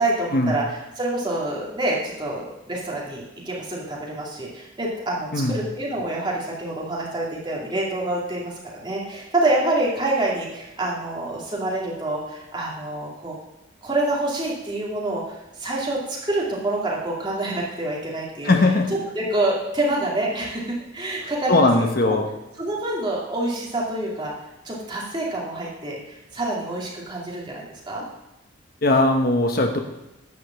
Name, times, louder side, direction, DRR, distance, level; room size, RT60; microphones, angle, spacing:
voice 1, 0.0-13.4 13.8-18.5 19.1-21.7 22.0-22.2 22.6-24.3 24.6-28.0, right 2 dB, 25° right, -4 dB, 2.5 m, -27 dB
voice 2, 18.4-18.9 21.5-22.3 28.8-29.8, left 2 dB, 50° left, 4 dB, 1.0 m, -19 dB
11.0 x 5.1 x 7.6 m, 0.96 s
head